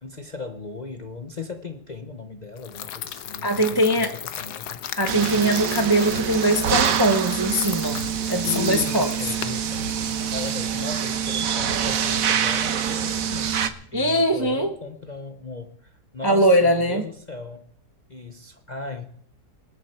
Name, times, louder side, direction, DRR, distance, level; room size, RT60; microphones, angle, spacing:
voice 1, 0.0-4.1 4.4-4.8 8.4-9.9 10.3-17.7 18.1-19.1, left 4 dB, 35° left, 0.7 m, -37 dB
sound 1, 2.6-10.5, left 10 dB, 80° left, 1.4 m, -37 dB
voice 2, 3.4-4.1 5.0-8.0 8.3-9.1 13.9-14.7 16.2-17.0, right 1 dB, 20° right, 0.6 m, -21 dB
sound 2, 5.1-13.7, right 8 dB, 60° right, 1.3 m, -25 dB
sound 3, 6.1-14.9, left 1 dB, 50° left, 2.7 m, -43 dB
25.5 x 8.8 x 4.4 m
omnidirectional pair, 1.7 m